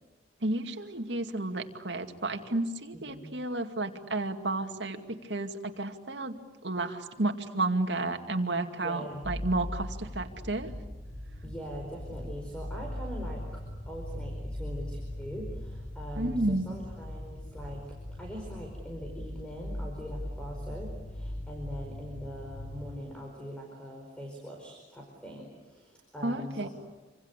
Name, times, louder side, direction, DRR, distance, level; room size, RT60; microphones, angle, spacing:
voice 1, 0.4-6.3 6.6-10.7 16.2-16.7 26.2-26.7, right 2 dB, 70° right, 5 dB, 2.4 m, -32 dB
voice 2, 8.8-9.3 11.4-26.7, equal, 5° left, 0 dB, 4.8 m, -42 dB
sound 1, 9.2-23.0, left 1 dB, 25° left, 5.1 m, -39 dB
27.5 x 26.0 x 8.3 m, 1.1 s
head